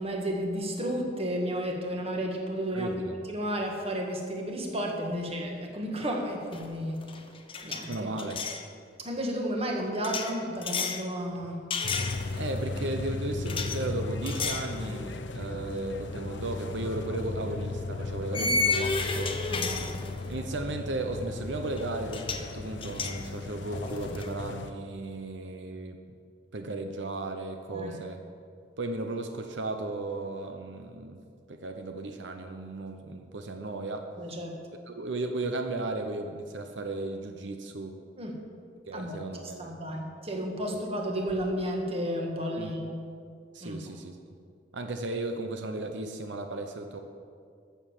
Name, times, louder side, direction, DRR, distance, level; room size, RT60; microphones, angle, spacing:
voice 1, 0.0-7.1 7.6-8.1 9.0-11.7 18.4-18.5 19.5-19.8 27.7-28.0 34.2-34.6 38.2-38.4 38.9-43.0 43.6-43.8, equal, 35° right, 1 dB, 1.7 m, -32 dB
voice 2, 2.7-3.1 7.9-8.5 12.3-19.6 20.3-26.0 26.5-28.2 28.8-31.2 31.5-34.1 34.9-38.0 38.9-39.8 42.6-42.7 43.5-44.4 44.7-47.0, right 2 dB, 85° right, 5 dB, 0.9 m, -35 dB
sound 1, 6.5-6.8 7.0-8.6 10.0-11.0 11.7-12.6 13.5-13.8 14.3-14.7 15.2-15.3 16.9-17.0 18.3-20.4 21.8-21.9 22.1-22.5 22.8-24.3, left 4 dB, 30° left, 0.9 m, -32 dB
sound 2, 11.8-24.7, left 3 dB, 80° left, 0.8 m, -36 dB
12.5 x 7.0 x 7.4 m, 2.3 s
head